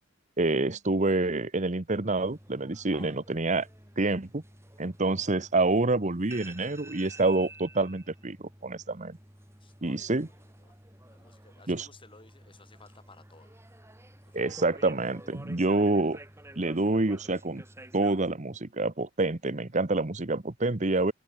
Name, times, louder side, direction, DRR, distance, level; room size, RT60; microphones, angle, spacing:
voice 1, 0.4-3.7 4.0-4.4 4.8-9.2 9.8-10.3 11.7-11.9 14.3-16.2 16.6-17.6 17.9-21.1, right 2 dB, 35° right, 1.2 m, -27 dB
sound 1, 2.2-18.3, right 1 dB, 15° right, 5.0 m, -51 dB
voice 2, 9.6-10.8 11.1-13.6 14.2-14.8, left 3 dB, 25° left, 6.8 m, -56 dB
head